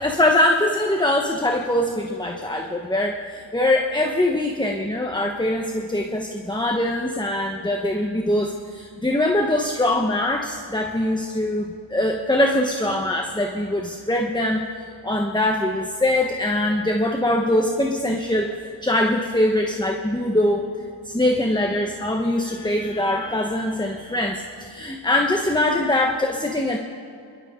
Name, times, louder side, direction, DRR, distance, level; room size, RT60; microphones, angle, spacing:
voice 1, 0.0-14.7 15.0-20.7 21.0-26.8, left 1 dB, 10° left, 2 dB, 1.1 m, -22 dB
29.0 x 12.0 x 3.8 m, 2.5 s
wide cardioid pair, 45°, 45 cm